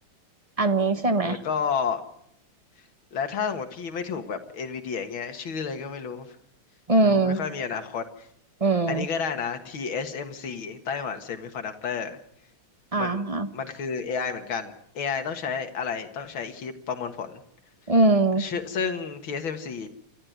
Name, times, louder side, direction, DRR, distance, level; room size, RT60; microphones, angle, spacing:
voice 1, 0.6-1.4 6.9-7.4 8.6-9.0 12.9-13.5 17.9-18.4, right 2 dB, 20° right, 10 dB, 1.1 m, -21 dB
voice 2, 1.2-2.0 3.1-6.3 7.1-8.3 8.9-12.2 12.9-13.2 13.5-17.4 18.4-19.9, left 6 dB, 85° left, 6 dB, 2.5 m, -31 dB
28.5 x 13.0 x 9.4 m, 0.73 s
omnidirectional pair, 2.1 m